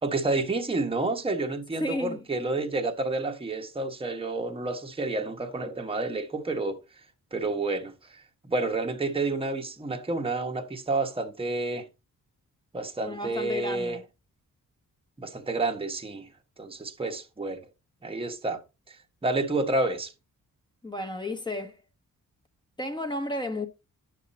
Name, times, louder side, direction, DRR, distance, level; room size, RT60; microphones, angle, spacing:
voice 1, 0.0-6.8 7.3-7.9 8.4-11.9 12.7-14.0 15.2-16.3 16.6-17.6 18.0-18.6 18.9-19.0 19.2-20.1, right 2 dB, 15° right, 1.1 m, -29 dB
voice 2, 1.8-2.2 13.0-14.0 20.8-21.8 22.8-23.7, left 1 dB, 15° left, 1.2 m, -32 dB
11.0 x 7.4 x 4.1 m
wide cardioid pair, 170°, 34 cm